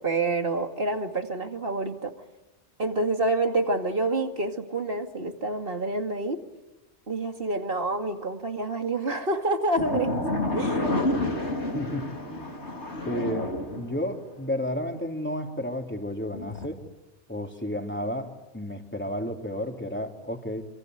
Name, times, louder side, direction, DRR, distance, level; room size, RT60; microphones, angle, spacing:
voice 1, 0.0-2.1 2.8-6.4 7.1-10.2 10.5-10.8, right 2 dB, 55° right, 5 dB, 2.5 m, -27 dB
sound 1, 9.8-14.2 16.3-16.7, left 1 dB, 75° left, 3.9 m, -29 dB
voice 2, 11.7-12.6 13.1-16.8 17.3-20.7, left 1 dB, 10° left, 3 dB, 3.3 m, -32 dB
27.5 x 27.0 x 8.0 m, 1.1 s
omnidirectional pair, 1.2 m